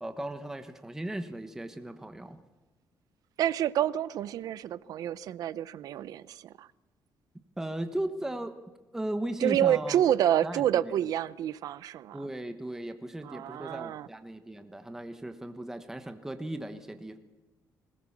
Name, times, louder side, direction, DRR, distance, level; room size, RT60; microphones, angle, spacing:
voice 1, 0.0-2.4 7.6-8.5 8.9-10.0 10.4-10.6 12.1-17.2, right 1 dB, 5° right, 1.1 m, -36 dB
voice 2, 3.4-6.7 9.4-12.2 13.2-14.1, right 11 dB, 65° right, 0.7 m, -28 dB
20.5 x 19.5 x 7.3 m
cardioid pair, 160°, 7 cm